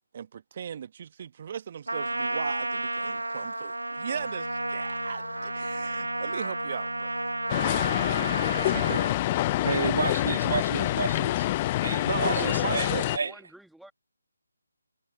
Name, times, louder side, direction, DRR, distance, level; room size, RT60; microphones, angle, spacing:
voice 1, 0.1-7.1 8.7-9.0 12.0-13.1, right 8 dB, 35° right, 1.3 m, -37 dB
Trumpet, 1.9-9.2, right 2 dB, 75° right, 1.4 m, -32 dB
sound 1, 4.1-8.1, left 2 dB, 75° left, 6.5 m, -43 dB
sound 2, 7.5-13.2, left 16 dB, 25° left, 0.5 m, -26 dB
voice 2, 8.5-9.7 12.4-13.9, right 1 dB, ahead, 2.1 m, -49 dB
voice 3, 9.6-11.5 11.8-13.3, right 4 dB, 50° right, 3.2 m, -30 dB
figure-of-eight pair, 150°, 0 cm